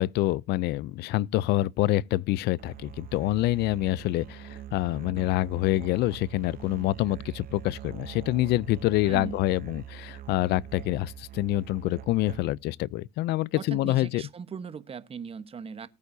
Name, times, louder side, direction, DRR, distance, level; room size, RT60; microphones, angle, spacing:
voice 1, 0.0-14.2, left 16 dB, 80° left, 0.5 m, -26 dB
Musical instrument, 2.6-12.7, right 12 dB, 60° right, 0.8 m, -43 dB
voice 2, 9.0-9.4 13.6-15.9, right 6 dB, 35° right, 1.1 m, -38 dB
19.5 x 8.4 x 2.7 m
cardioid pair, 110°, 17 cm